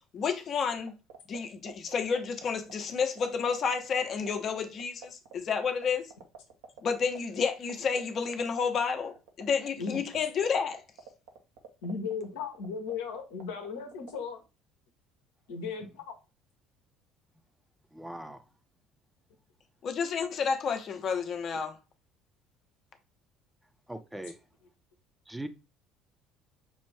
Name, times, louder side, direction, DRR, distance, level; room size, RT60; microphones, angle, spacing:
voice 1, 0.1-1.0 1.3-6.1 6.8-10.8 19.8-21.8, left 6 dB, 45° left, 0.8 m, -30 dB
sound 1, 0.8-14.2, right 8 dB, 65° right, 0.8 m, -46 dB
voice 2, 11.8-14.4 15.5-16.1, left 5 dB, 75° left, 0.9 m, -36 dB
voice 3, 17.9-18.4 23.9-24.3 25.3-25.5, right 1 dB, 5° right, 0.6 m, -40 dB
5.4 x 2.5 x 3.3 m
figure-of-eight pair, 60°, 0 cm